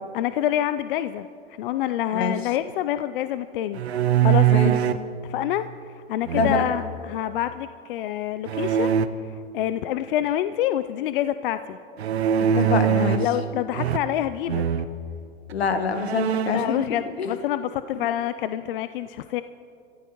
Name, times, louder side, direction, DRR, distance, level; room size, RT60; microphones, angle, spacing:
voice 1, 0.1-1.3 1.6-4.7 5.2-5.7 6.1-9.0 9.2-11.8 13.2-14.6 16.5-19.4, left 12 dB, 60° left, 12 dB, 0.5 m, -27 dB
sound 1, 3.7-5.1 6.2-7.0 8.5-9.1 12.0-13.4 13.7-14.2 14.5-14.9 15.5-15.6 15.9-16.7, right 9 dB, 85° right, 0.8 m, -22 dB
voice 2, 12.5-13.2 15.5-16.8 17.2-17.3, left 5 dB, 80° left, 9 dB, 1.5 m, -25 dB
27.5 x 15.0 x 3.1 m, 2.6 s
hypercardioid pair, 110°, 31 cm